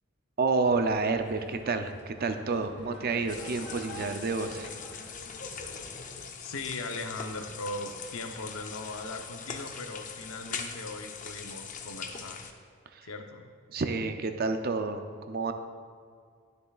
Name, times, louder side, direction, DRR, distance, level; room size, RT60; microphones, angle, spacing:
voice 1, 0.4-4.7 12.9-13.1 13.7-15.5, right 4 dB, 45° right, 8 dB, 0.5 m, -29 dB
sound 1, 0.6-6.2, left 1 dB, 55° left, 1.0 m, -46 dB
sound 2, 3.3-12.5, left 6 dB, 40° left, 0.5 m, -42 dB
voice 2, 6.4-12.5 13.0-13.5, left 2 dB, 80° left, 5 dB, 0.7 m, -39 dB
11.5 x 6.7 x 2.4 m, 2.1 s
head